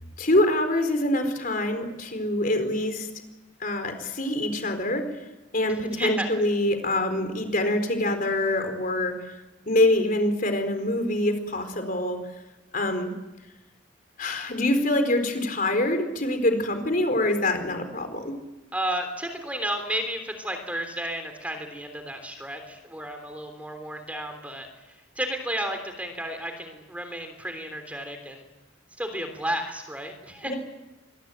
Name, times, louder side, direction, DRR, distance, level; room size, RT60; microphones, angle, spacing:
voice 1, 0.2-3.1 3.6-5.1 5.5-9.2 9.7-12.2 12.7-13.1 14.2-18.4 30.5-30.6, left 1 dB, 45° left, 7 dB, 4.2 m, -25 dB
voice 2, 5.7-6.3 18.7-28.4 29.0-30.5, right 1 dB, 10° right, 6 dB, 3.4 m, -32 dB
26.0 x 22.0 x 9.3 m, 1.0 s
head